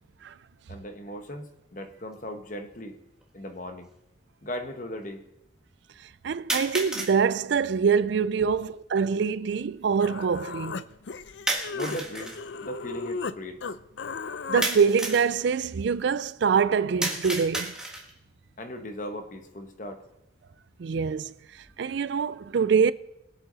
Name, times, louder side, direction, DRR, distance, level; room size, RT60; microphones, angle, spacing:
voice 1, 0.7-3.0 3.3-3.9 4.4-5.2 8.4-8.6 11.7-12.4 12.6-13.6 18.6-20.0, left 1 dB, 40° left, 1.2 m, -38 dB
sound 1, 2.1-2.2 3.2-3.3 6.5-7.2 11.5-12.4 14.6-15.3 17.0-18.2, right 1 dB, 5° right, 1.5 m, -31 dB
voice 2, 6.2-10.8 14.5-17.8 20.8-21.3 21.8-22.9, right 6 dB, 65° right, 0.4 m, -24 dB
Human voice, 9.6-9.7 10.0-13.4 13.6-14.7, left 4 dB, 70° left, 0.5 m, -35 dB
21.5 x 8.0 x 4.0 m
head